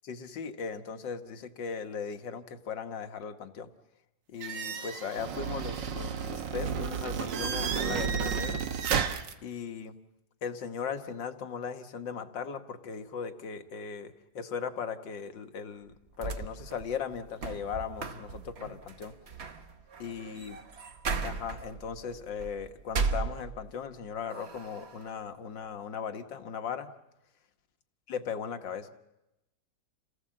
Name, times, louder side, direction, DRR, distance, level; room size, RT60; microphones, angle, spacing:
voice 1, 0.0-3.7 4.3-8.6 9.4-9.9 10.4-19.1 20.0-20.6 21.2-26.9 28.1-28.9, left 6 dB, 80° left, 7 dB, 2.0 m, -38 dB
sound 1, 4.4-9.3, right 7 dB, 75° right, 1.8 m, -32 dB
sound 2, 15.9-23.9 24.3-25.1, right 4 dB, 40° right, 1.2 m, -37 dB
29.0 x 18.5 x 7.6 m, 0.94 s
omnidirectional pair, 2.0 m